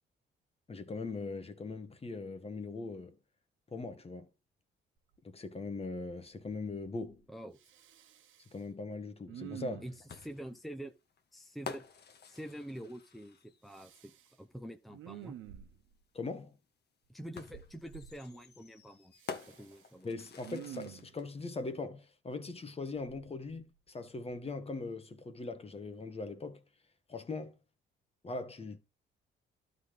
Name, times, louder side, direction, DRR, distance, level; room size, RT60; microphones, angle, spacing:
voice 1, 0.7-3.2 3.7-4.3 5.2-7.2 8.5-9.8 16.1-16.6 20.0-26.6 27.1-27.5 28.2-28.8, left 3 dB, 30° left, 1.7 m, -40 dB
Respiratory sounds, 5.1-5.2 5.7-6.2 6.5-7.2 7.6-8.6 9.3-10.1 13.7-14.3 14.9-16.0 17.5-18.1 19.2-19.9 20.4-21.1 23.0-23.9 24.3-24.5, right 11 dB, 80° right, 1.1 m, -49 dB
voice 2, 7.3-7.6 9.8-10.9 11.3-11.8 12.3-15.3 17.1-19.1 19.5-20.1, right 1 dB, ahead, 1.0 m, -46 dB
sound 1, 10.1-13.7 15.2-15.3 17.4-21.3, left 5 dB, 55° left, 1.6 m, -48 dB
12.0 x 4.1 x 5.0 m
cardioid pair, 90°, 20 cm